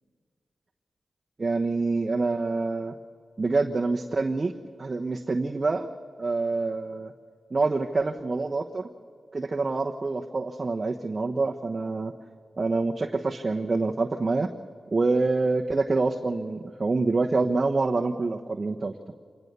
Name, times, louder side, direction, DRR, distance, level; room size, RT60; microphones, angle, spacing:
voice 1, 1.4-2.9 3.4-5.9 6.2-7.1 7.5-8.9 9.3-12.1 12.6-14.5 14.9-18.9, right 3 dB, 45° right, 1 dB, 1.2 m, -26 dB
26.0 x 20.0 x 6.9 m, 2.1 s
cardioid pair, 50°, 0 cm